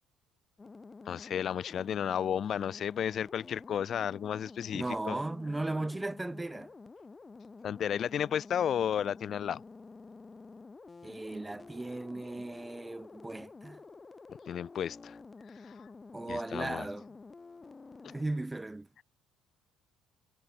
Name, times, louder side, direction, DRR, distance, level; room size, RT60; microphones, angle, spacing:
sound 1, 0.6-18.2, left 4 dB, 15° left, 2.8 m, -50 dB
voice 1, 1.1-5.2 7.6-9.6 14.5-15.2 15.6-15.9 16.3-16.9 18.0-18.1, left 9 dB, 40° left, 0.8 m, -33 dB
voice 2, 4.7-6.7 11.0-13.8 16.1-17.1 18.1-18.9, right 2 dB, 10° right, 0.6 m, -36 dB
cardioid pair, 150°, 0 cm